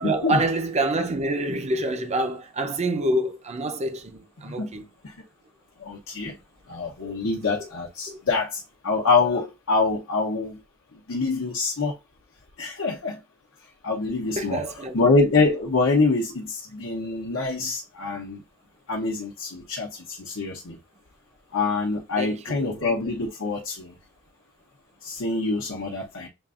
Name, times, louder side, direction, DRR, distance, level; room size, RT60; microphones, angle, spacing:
voice 1, 0.0-4.8 7.0-7.1 8.1-8.2 14.4-15.0 22.2-22.8, right 1 dB, 30° right, 0.6 m, -27 dB
voice 2, 5.8-6.3 6.7-10.6 11.1-11.9 12.6-13.2 13.8-14.6 14.9-18.4 18.9-20.8 21.5-23.9 25.0-26.3, left 3 dB, 70° left, 0.9 m, -25 dB
7.0 x 2.5 x 2.5 m
head